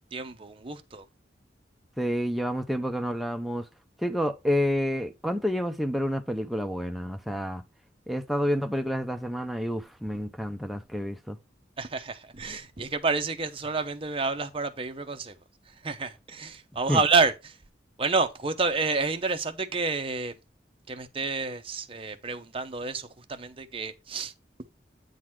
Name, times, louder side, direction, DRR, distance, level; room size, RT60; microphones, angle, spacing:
voice 1, 0.1-1.0 11.8-15.3 15.8-17.3 18.0-20.3 20.9-24.3, right 4 dB, 30° right, 0.8 m, -29 dB
voice 2, 2.0-3.7 4.0-7.6 8.1-11.4 16.9-17.0, equal, ahead, 0.6 m, -29 dB
8.7 x 4.0 x 4.6 m
head